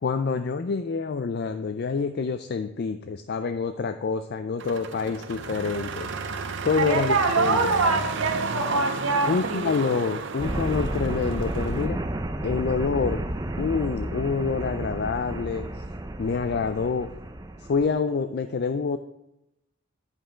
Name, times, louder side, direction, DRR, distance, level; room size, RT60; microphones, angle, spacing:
voice 1, 0.0-6.1 6.6-7.7 9.3-12.0 12.4-13.3 13.6-15.7 16.2-17.1 17.7-19.0, left 5 dB, 50° left, 9 dB, 0.4 m, -27 dB
sound 1, 4.6-11.9, right 4 dB, 60° right, 0.7 m, -33 dB
voice 2, 6.8-9.6, right 3 dB, 85° right, 2 dB, 1.7 m, -24 dB
sound 2, 10.4-17.9, right 1 dB, 15° right, 0.5 m, -32 dB
9.6 x 5.4 x 5.0 m, 0.86 s
head